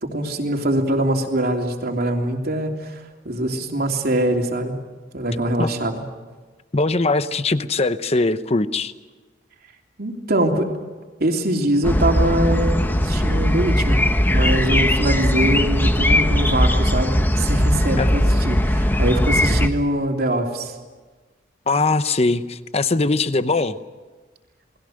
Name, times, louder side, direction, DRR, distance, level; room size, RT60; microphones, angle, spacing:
voice 1, 0.0-3.0 3.2-4.8 5.1-6.0 10.0-10.7 11.2-20.7, right 1 dB, 55° right, 2 dB, 3.2 m, -23 dB
voice 2, 6.7-8.9 18.0-18.1 21.7-23.8, left 3 dB, 35° left, 12 dB, 0.8 m, -21 dB
sound 1, 11.8-19.7, left 1 dB, 10° left, 1.0 m, -19 dB
29.5 x 20.5 x 6.5 m, 1.3 s
head